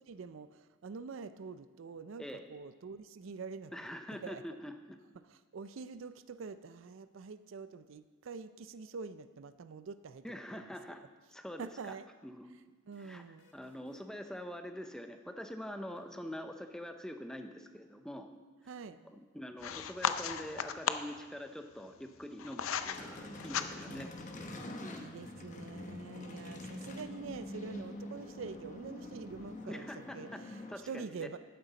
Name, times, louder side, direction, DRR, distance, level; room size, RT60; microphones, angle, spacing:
voice 1, 0.1-3.7 4.2-4.4 5.3-10.3 10.5-10.7 11.6-12.1 12.9-13.7 18.7-19.0 23.9-24.1 25.0-31.4, right 5 dB, 70° right, 12 dB, 0.4 m, -46 dB
voice 2, 3.7-5.0 10.2-11.0 11.3-12.0 12.2-12.6 13.0-13.2 13.5-18.3 19.1-24.1 24.8-25.1 29.7-30.4 30.7-31.3, equal, 5° left, 6 dB, 0.5 m, -45 dB
sound 1, 12.6-14.2 16.0-16.4 18.8-19.0 19.3-19.4 21.1-21.9 23.5-23.9 24.2-24.4 24.7-24.8 27.2-27.6 27.9-29.0, equal, 60° left, 1.8 m, -65 dB
sound 2, 19.6-21.2 22.0-23.0 23.3-24.0, left 8 dB, 85° left, 0.5 m, -35 dB
sound 3, 22.9-30.8, left 1 dB, 35° left, 0.9 m, -45 dB
11.0 x 9.3 x 4.0 m, 1.3 s
head